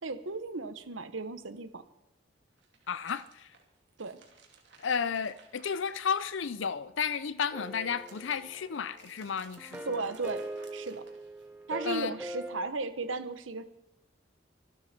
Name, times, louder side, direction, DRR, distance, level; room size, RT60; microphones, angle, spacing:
voice 1, 0.0-1.8 4.0-4.2 9.8-10.4 10.7-11.0 11.7-13.6, right 4 dB, 90° right, 1.2 m, -35 dB
sound 1, 2.5-6.6 7.0-11.6, right 5 dB, 65° right, 3.0 m, -60 dB
voice 2, 2.9-3.5 4.8-10.1 11.8-12.1, left 6 dB, 80° left, 0.6 m, -33 dB
sound 2, 7.5-9.0 9.6-12.7, right 1 dB, 5° right, 1.0 m, -42 dB
24.5 x 12.0 x 4.4 m
head